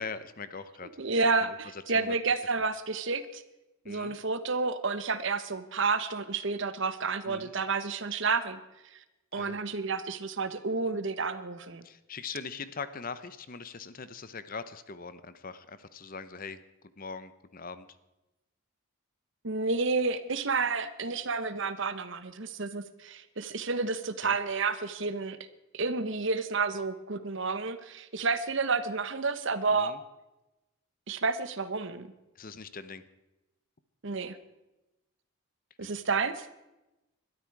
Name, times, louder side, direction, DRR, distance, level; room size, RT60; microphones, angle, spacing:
voice 1, 0.0-0.9 1.4-2.2 3.8-4.2 7.3-7.5 9.4-9.6 11.8-16.6 17.0-17.9 24.2-24.4 29.7-30.0 32.4-33.0 35.8-35.9, left 5 dB, 40° left, 13 dB, 0.8 m, -41 dB
voice 2, 1.0-3.4 3.9-8.6 8.9-9.0 9.3-11.8 19.4-25.4 25.7-30.0 31.1-32.1 34.0-34.4 35.8-36.5, right 4 dB, 60° right, 12 dB, 1.0 m, -30 dB
21.0 x 12.5 x 4.8 m, 0.99 s
head